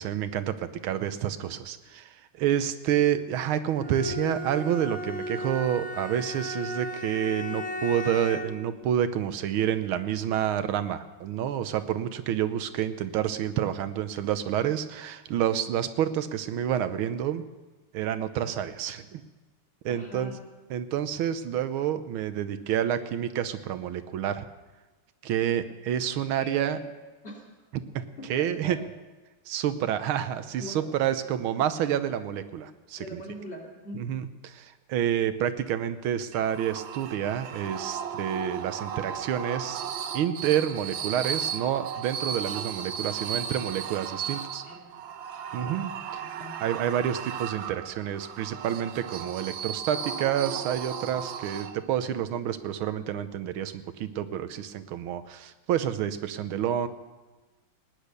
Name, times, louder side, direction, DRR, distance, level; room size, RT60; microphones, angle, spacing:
voice 1, 0.0-17.4 17.9-19.2 19.8-20.3 20.7-24.5 25.2-26.8 27.9-28.0 28.3-28.8 29.5-33.2 33.9-39.8 40.1-44.6 45.5-46.2 46.6-56.9, right 10 dB, 90° right, 11 dB, 1.6 m, -29 dB
Bowed string instrument, 3.8-8.7, left 1 dB, 15° left, 0.3 m, -35 dB
voice 2, 19.9-20.4 26.3-26.9 27.2-27.4 28.2-28.8 30.6-30.9 33.0-34.0 44.6-44.8 45.5-45.8 46.2-46.6, equal, 30° left, -1 dB, 2.9 m, -41 dB
sound 1, 36.3-52.1, right 8 dB, 70° right, 1.5 m, -35 dB
19.0 x 10.0 x 6.8 m, 1.2 s
omnidirectional pair, 2.3 m